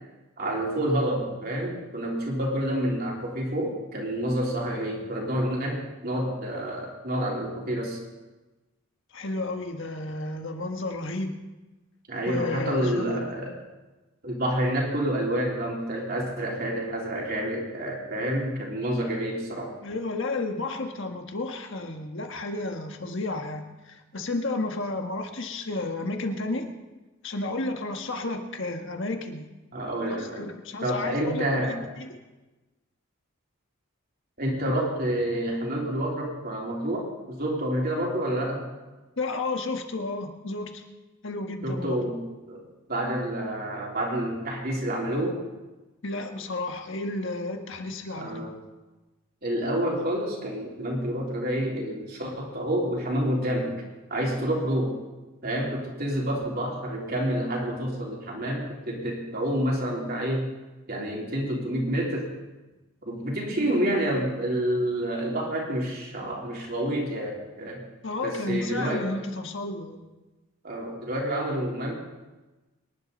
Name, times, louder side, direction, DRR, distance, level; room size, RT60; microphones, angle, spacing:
voice 1, 0.4-8.0 12.1-13.6 14.2-19.8 29.7-30.5 30.8-31.8 34.4-38.6 41.6-42.6 42.9-45.4 48.2-48.6 49.4-53.7 54.1-55.0 55.4-60.5 60.9-62.3 63.1-67.8 68.2-69.1 70.6-71.9, right 1 dB, 45° right, -2 dB, 3.5 m, -28 dB
voice 2, 9.1-11.4 12.2-13.4 19.8-26.7 27.2-29.5 30.1-32.1 39.2-40.8 41.2-42.1 46.0-48.4 68.0-70.0, left 2 dB, 55° left, 4 dB, 1.5 m, -32 dB
24.5 x 11.0 x 4.1 m, 1.1 s
head